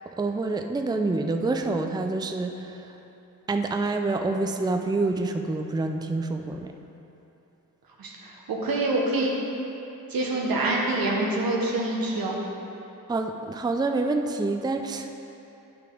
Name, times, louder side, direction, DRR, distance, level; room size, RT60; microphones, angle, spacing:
voice 1, 0.2-2.8 3.5-6.7 13.1-15.1, right 3 dB, 10° right, 5 dB, 0.4 m, -27 dB
voice 2, 8.0-9.4 10.1-12.4, right 2 dB, 85° right, -2 dB, 1.2 m, -26 dB
9.0 x 5.8 x 3.8 m, 3.0 s
cardioid pair, 70°, 34 cm